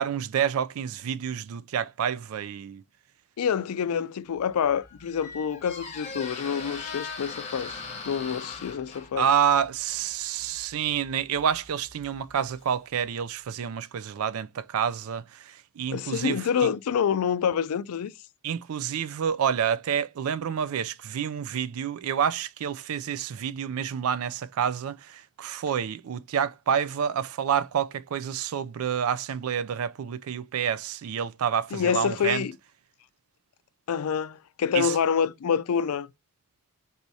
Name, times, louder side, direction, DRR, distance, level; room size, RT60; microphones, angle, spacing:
voice 1, 0.0-2.8 9.2-16.4 18.4-32.4 34.7-34.9, right 8 dB, 75° right, 0.4 m, -28 dB
voice 2, 3.4-7.7 8.1-9.3 15.9-18.1 31.7-32.5 33.9-36.1, left 7 dB, 90° left, 0.4 m, -27 dB
Squeak, 4.4-13.2, left 4 dB, 35° left, 0.9 m, -41 dB
4.1 x 2.7 x 4.6 m
head